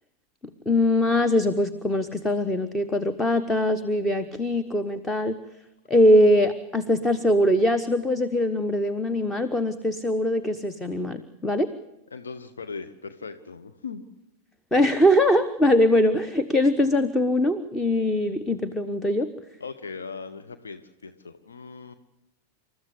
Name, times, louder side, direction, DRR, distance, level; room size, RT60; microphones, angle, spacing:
voice 1, 0.7-5.4 5.9-11.7 14.7-19.3, left 1 dB, 10° left, 12 dB, 1.1 m, -22 dB
voice 2, 12.1-14.0 19.6-21.9, left 5 dB, 70° left, 8 dB, 1.1 m, -39 dB
28.0 x 14.0 x 8.1 m, 0.91 s
figure-of-eight pair, 90°, 0 cm